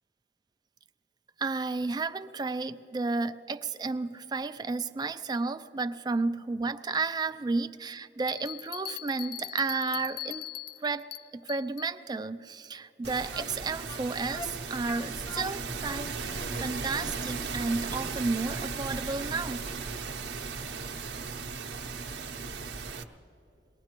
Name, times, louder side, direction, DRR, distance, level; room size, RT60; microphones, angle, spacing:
voice 1, 1.4-10.5 10.8-16.1 16.6-19.7, right 3 dB, 25° right, 0.3 m, -32 dB
sound 1, 8.3-11.9, left 11 dB, 55° left, 0.4 m, -41 dB
sound 2, 13.0-23.0, right 4 dB, 70° right, 0.7 m, -36 dB
sound 3, 13.3-20.1 20.4-20.5 21.1-21.2 21.5-21.6, left 1 dB, 25° left, 0.9 m, -44 dB
23.0 x 19.0 x 3.0 m
head